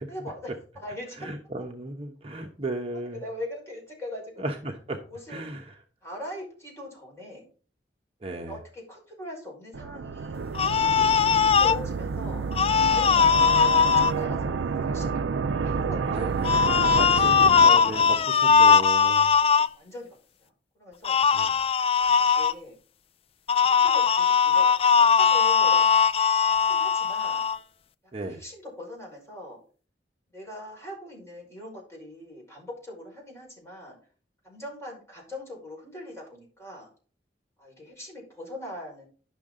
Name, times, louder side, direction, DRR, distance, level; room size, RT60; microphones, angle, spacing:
voice 1, 0.1-1.3 2.9-4.4 5.1-5.4 6.0-7.5 8.3-10.5 11.4-12.5 12.8-15.1 15.4-17.4 19.7-21.2 21.9-22.8 23.7-24.7 25.1-25.9 26.7-27.4 28.2-29.6 30.3-34.0 34.4-36.9 37.6-39.1, left 1 dB, 15° left, -3 dB, 5.3 m, -41 dB
voice 2, 1.2-3.2 4.4-5.0 5.3-5.7 8.2-8.5 16.1-16.5 16.9-19.3 21.3-21.5 28.1-28.4, right 2 dB, 30° right, 2 dB, 1.0 m, -35 dB
sound 1, 9.7-18.3, right 5 dB, 85° right, 0.5 m, -30 dB
sound 2, 10.5-11.8 12.5-14.1 16.4-19.7 21.0-22.5 23.5-27.6, left 6 dB, 30° left, 0.3 m, -20 dB
10.5 x 6.4 x 3.8 m, 0.39 s
head